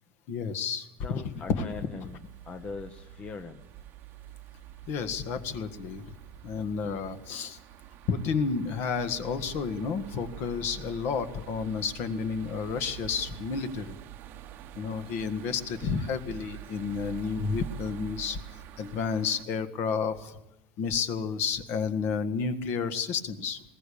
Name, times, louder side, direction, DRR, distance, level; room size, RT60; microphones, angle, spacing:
voice 1, 0.3-1.2 1.5-1.6 4.9-6.0 6.4-7.6 8.1-13.9 14.7-18.4 18.8-20.4 20.8-23.6, left 5 dB, 45° left, 10 dB, 1.7 m, -31 dB
voice 2, 1.0-3.7, left 4 dB, 25° left, 8 dB, 0.9 m, -41 dB
sound 1, 1.2-19.4, right 10 dB, 40° right, 0.9 m, -46 dB
20.5 x 18.5 x 8.6 m, 0.92 s
cardioid pair, 165°, 5 cm